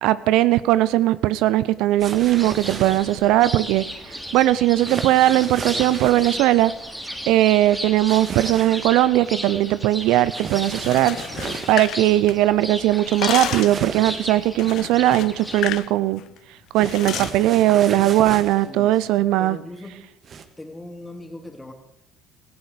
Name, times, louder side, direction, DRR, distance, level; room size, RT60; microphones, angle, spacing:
voice 1, 0.0-3.8 4.3-6.7 7.3-11.2 11.7-16.2 16.7-19.6, right 14 dB, 65° right, 16 dB, 0.5 m, -19 dB
sound 1, 2.0-15.8, equal, ahead, 2.7 m, -35 dB
sound 2, 2.0-3.2 4.8-6.4 8.1-8.9 10.3-11.8 13.3-14.4 16.8-18.7 20.2-20.4, right 6 dB, 45° right, 1.5 m, -34 dB
sound 3, 10.7-12.6 12.9-13.8 14.6-15.9 16.2-16.4 16.8-17.4, left 12 dB, 60° left, 0.5 m, -31 dB
voice 2, 18.7-20.0 20.6-21.7, left 1 dB, 15° left, 4 dB, 3.1 m, -39 dB
17.5 x 16.0 x 4.9 m, 0.81 s
hypercardioid pair, 60°, 0 cm